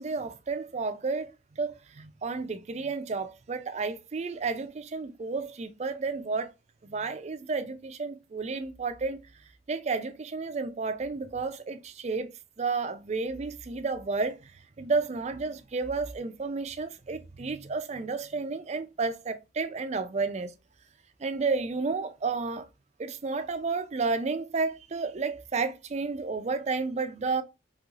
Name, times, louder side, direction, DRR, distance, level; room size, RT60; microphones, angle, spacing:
voice 1, 0.0-6.5 6.8-9.2 9.7-14.5 14.8-20.5 21.2-22.7 23.0-27.4, right 4 dB, 40° right, 0.4 m, -31 dB
3.1 x 3.0 x 2.4 m
head